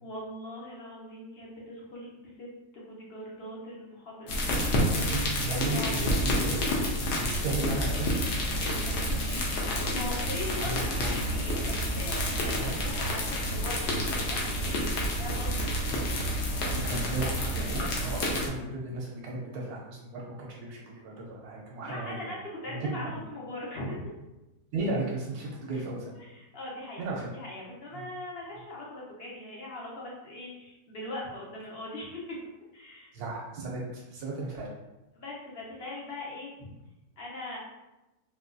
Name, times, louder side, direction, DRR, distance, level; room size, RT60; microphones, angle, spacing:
voice 1, 0.0-2.5 2.7-4.5 4.8-6.2 8.5-9.4 9.8-15.7 16.7-16.8 21.9-22.4 22.6-24.0 25.7-25.8 26.1-27.0 27.3-32.4 32.7-33.1 35.1-36.7 37.2-37.6, left 1 dB, 50° left, -4 dB, 0.8 m, -40 dB
sound 1, 4.3-18.5, equal, 90° left, 1.3 m, -29 dB
voice 2, 5.1-6.6 7.1-8.1 10.6-11.1 12.5-12.7 15.9-16.0 16.3-22.3 22.7-23.2 24.7-26.1 27.0-27.3 27.9-28.0 33.1-34.7, right 3 dB, 75° right, -2 dB, 1.1 m, -35 dB
4.1 x 2.5 x 2.3 m, 1.0 s
omnidirectional pair, 1.7 m